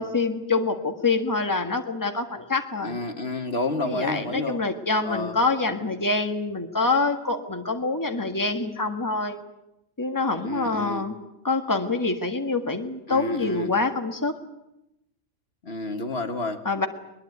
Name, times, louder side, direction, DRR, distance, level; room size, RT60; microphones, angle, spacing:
voice 1, 0.0-3.0 3.8-9.4 10.0-11.2 11.4-14.3 16.7-16.9, left 3 dB, 15° left, 5 dB, 1.7 m, -26 dB
voice 2, 2.8-4.6 5.0-5.4 10.4-11.0 13.1-13.7 15.6-16.6, left 2 dB, 55° left, 7 dB, 1.6 m, -30 dB
21.0 x 21.0 x 9.4 m, 0.89 s
omnidirectional pair, 1.3 m